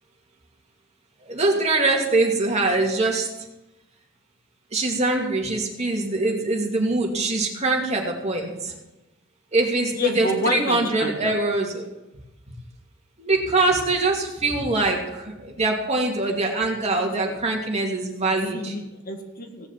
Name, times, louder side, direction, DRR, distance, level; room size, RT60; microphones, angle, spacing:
voice 1, 1.2-3.3 4.7-8.7 9.5-11.9 13.2-18.7, right 2 dB, 35° right, 0 dB, 2.6 m, -23 dB
voice 2, 10.0-11.4 17.2-17.3 18.5-19.7, left 2 dB, 45° left, 4 dB, 1.7 m, -28 dB
17.5 x 7.0 x 7.4 m, 0.99 s
head